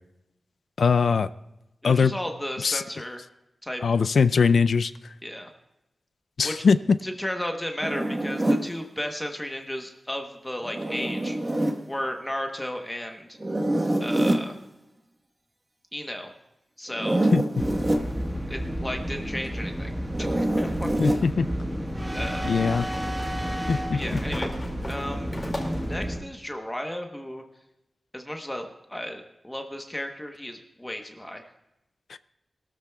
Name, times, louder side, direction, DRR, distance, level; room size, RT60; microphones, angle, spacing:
voice 1, 0.8-1.3 1.8-2.1 2.6-2.8 3.8-4.9 6.4-6.8 17.3-17.4 21.0-21.5 22.4-22.9 23.7-24.0, left 5 dB, 80° left, 14 dB, 0.4 m, -21 dB
voice 2, 1.8-3.2 3.6-3.8 5.2-5.5 6.4-6.6 7.0-11.4 11.9-13.4 14.0-14.6 15.9-16.3 16.8-17.2 18.5-19.9 20.2-21.2 22.1-22.5 23.9-24.5 24.9-25.3 25.8-27.4 28.1-31.5, left 1 dB, 10° left, 4 dB, 0.9 m, -34 dB
Zipper (clothing), 7.8-8.7 10.6-11.8 13.4-14.5 16.9-18.1 20.1-21.2, right 1 dB, 25° right, 1.2 m, -25 dB
sound 1, 17.6-26.2, equal, 10° right, 1.3 m, -31 dB
sound 2, 22.6-26.0, left 1 dB, 25° left, 2.2 m, -38 dB
21.0 x 13.5 x 2.3 m, 0.92 s
wide cardioid pair, 140°, 0 cm